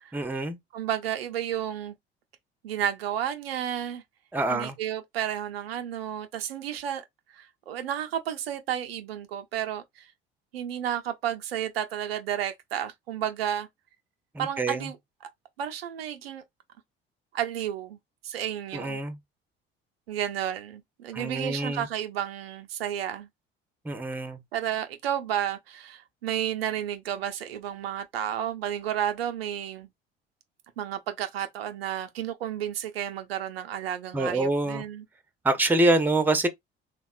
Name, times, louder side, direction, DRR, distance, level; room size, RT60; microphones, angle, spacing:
voice 1, 0.1-0.6 4.3-4.8 14.3-14.9 18.7-19.2 21.1-21.9 23.8-24.4 34.1-34.8 35.4-36.5, right 2 dB, 5° right, 0.5 m, -26 dB
voice 2, 0.7-1.9 2.6-4.0 4.5-7.0 7.3-10.1 10.5-13.7 14.4-15.0 15.6-16.4 17.3-18.0 18.2-19.0 20.1-23.3 24.5-29.9 30.8-35.0, right 10 dB, 80° right, 0.5 m, -32 dB
3.4 x 2.1 x 2.3 m
figure-of-eight pair, 55°, 29 cm